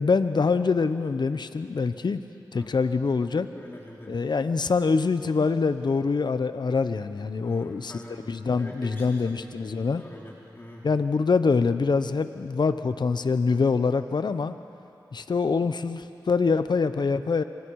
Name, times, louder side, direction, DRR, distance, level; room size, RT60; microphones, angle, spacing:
voice 1, 0.0-2.2 2.5-3.5 4.1-7.9 8.3-10.0 10.8-14.6 15.1-17.4, left 4 dB, 65° left, 11 dB, 0.9 m, -24 dB
voice 2, 3.5-4.1 7.4-9.6 10.0-10.9, left 1 dB, 30° left, -4 dB, 3.0 m, -44 dB
26.5 x 25.0 x 4.9 m, 2.7 s
cardioid pair, 50°, 8 cm